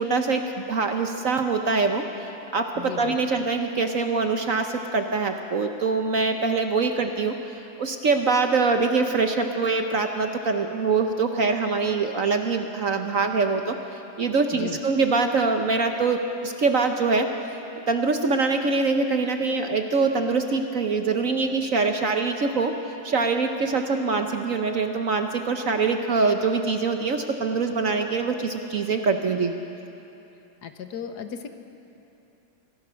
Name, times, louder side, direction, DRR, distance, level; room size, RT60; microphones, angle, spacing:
voice 1, 0.0-7.4 7.8-17.3 17.9-22.7 23.0-29.5, right 4 dB, 55° right, 5 dB, 1.1 m, -24 dB
voice 2, 30.6-31.5, left 8 dB, 60° left, 8 dB, 1.3 m, -35 dB
25.0 x 16.5 x 6.3 m, 3.0 s
omnidirectional pair, 2.1 m